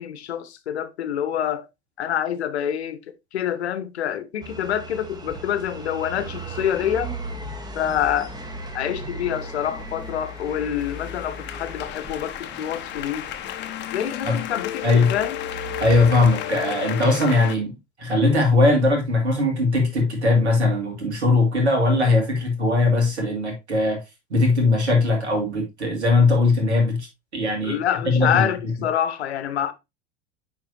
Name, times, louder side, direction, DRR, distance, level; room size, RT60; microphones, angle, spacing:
voice 1, 0.0-1.7 2.0-3.0 3.3-7.1 7.7-8.3 8.7-13.3 13.9-15.4 27.6-29.7, left 10 dB, 75° left, 0.9 m, -26 dB
sound 1, 4.4-16.6, right 2 dB, 10° right, 1.0 m, -38 dB
sound 2, 9.4-17.5, left 13 dB, 35° left, 0.7 m, -33 dB
voice 2, 15.8-24.0 24.3-27.1 27.3-27.8 28.0-28.5, left 2 dB, 85° right, 2.2 m, -20 dB
9.1 x 4.0 x 2.6 m
figure-of-eight pair, 85°, 33 cm